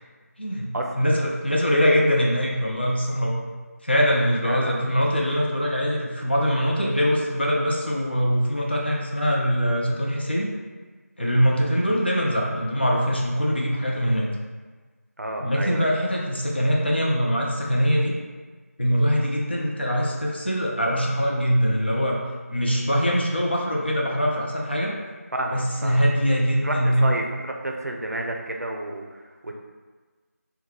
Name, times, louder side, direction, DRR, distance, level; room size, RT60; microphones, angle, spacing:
voice 1, 0.4-0.7 1.0-3.4 3.8-10.5 11.2-14.3 15.4-18.1 18.8-22.2 22.5-24.9 25.5-27.2, equal, 40° left, -2 dB, 0.5 m, -23 dB
voice 2, 4.4-4.9 11.2-11.4 15.2-15.9 25.3-26.0 26.6-29.5, right 1 dB, 70° right, 1 dB, 0.5 m, -31 dB
3.5 x 2.2 x 3.0 m, 1.4 s
figure-of-eight pair, 175°, 9 cm